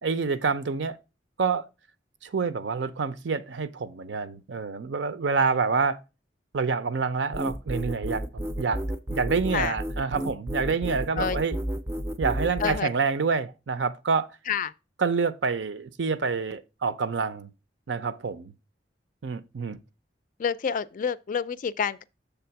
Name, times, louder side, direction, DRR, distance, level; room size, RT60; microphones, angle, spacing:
voice 1, 0.0-1.0 1.4-1.6 2.2-6.0 6.5-8.8 9.1-11.6 12.2-14.3 15.0-17.5 17.9-18.5 19.2-19.8, right 5 dB, 80° right, 0.6 m, -27 dB
sound 1, 7.3-12.8, equal, 15° right, 0.5 m, -31 dB
voice 2, 20.4-22.1, left 7 dB, 45° left, 0.3 m, -28 dB
7.0 x 3.4 x 5.7 m
head